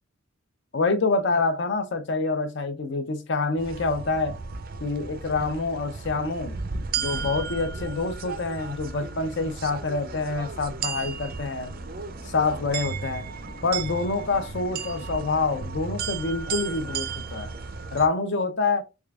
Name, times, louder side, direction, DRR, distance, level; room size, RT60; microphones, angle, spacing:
voice 1, 0.7-4.4 4.8-6.6 7.0-11.7 12.2-13.3 13.6-17.5 17.9-18.8, left 3 dB, 55° left, 0.5 m, -26 dB
sound 1, 3.6-18.1, right 5 dB, 45° right, 0.4 m, -34 dB
sound 2, 10.8-15.7, left 2 dB, 75° left, 0.9 m, -49 dB
3.6 x 3.3 x 2.3 m
head